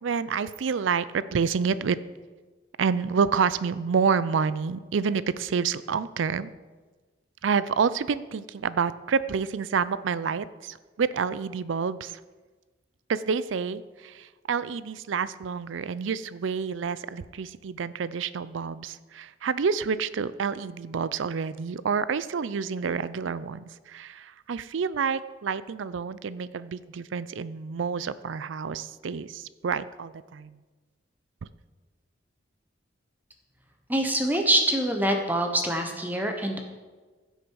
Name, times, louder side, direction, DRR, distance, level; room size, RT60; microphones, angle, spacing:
voice 1, 0.0-2.0 2.8-6.5 7.4-12.2 13.1-30.6, right 6 dB, 85° right, 16 dB, 0.4 m, -28 dB
voice 2, 33.9-36.6, right 1 dB, 10° right, 4 dB, 1.0 m, -25 dB
15.5 x 6.4 x 4.7 m, 1.3 s
head